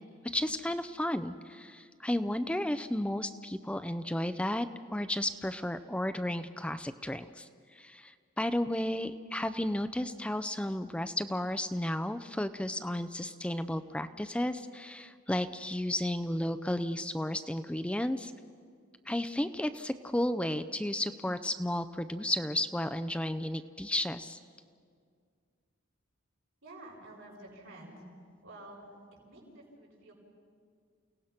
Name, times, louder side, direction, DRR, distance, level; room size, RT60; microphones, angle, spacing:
voice 1, 0.3-18.3 19.1-24.4, left 1 dB, 5° left, 11 dB, 0.4 m, -33 dB
voice 2, 26.6-28.1 28.4-28.8 29.3-30.1, right 1 dB, 80° right, -2 dB, 5.9 m, -50 dB
29.5 x 17.5 x 5.9 m, 2.1 s
head